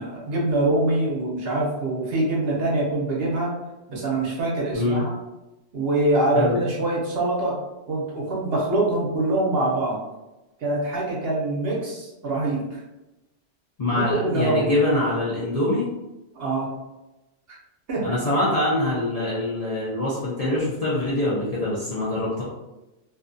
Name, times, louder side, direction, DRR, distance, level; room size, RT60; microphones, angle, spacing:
voice 1, 0.0-3.5 3.9-5.2 5.7-7.6 7.9-10.0 10.6-12.8 13.9-14.7 16.3-16.7 17.9-18.1, right 2 dB, 60° right, -4 dB, 0.9 m, -24 dB
voice 2, 13.8-15.9 18.0-22.4, left 1 dB, 50° left, -8 dB, 0.5 m, -24 dB
2.5 x 2.2 x 2.5 m, 1.0 s
omnidirectional pair, 1.2 m